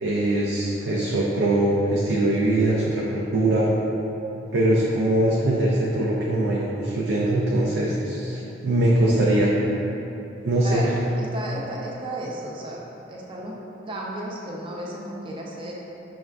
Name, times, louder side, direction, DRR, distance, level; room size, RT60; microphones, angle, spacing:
voice 1, 0.0-3.7 4.5-9.5 10.4-10.9, right 1 dB, 85° right, -5 dB, 0.4 m, -22 dB
voice 2, 10.6-12.8 13.1-13.6 13.9-15.7, right 1 dB, 30° right, -3 dB, 0.4 m, -33 dB
6.1 x 2.3 x 2.2 m, 3.0 s
head